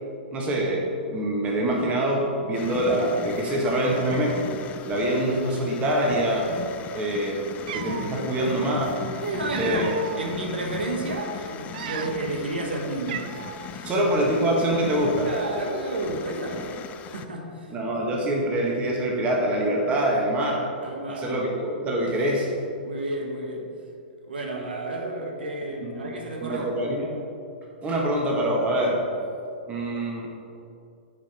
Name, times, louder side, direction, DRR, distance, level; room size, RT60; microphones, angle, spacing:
voice 1, 0.3-4.4 4.8-6.5 6.9-9.0 9.6-9.9 13.8-15.3 17.7-20.7 21.1-22.5 25.8-26.1 26.4-27.2 27.8-29.0 29.7-30.3, right 1 dB, 25° right, -2 dB, 1.6 m, -25 dB
sound 1, 2.5-17.2, left 7 dB, 25° left, 0.4 m, -39 dB
Cat, 7.1-7.2 7.6-8.1 9.1-10.3 10.8-11.0 11.6-12.4 12.6-12.7 13.1-13.7, right 9 dB, 55° right, 0.4 m, -35 dB
voice 2, 9.2-13.3 13.7-14.1 15.2-17.8 20.8-21.3 22.1-22.3 22.8-23.7 24.3-26.8, right 2 dB, 75° right, 1 dB, 1.3 m, -31 dB
10.0 x 5.1 x 4.4 m, 2.5 s
hypercardioid pair, 120°, 6 cm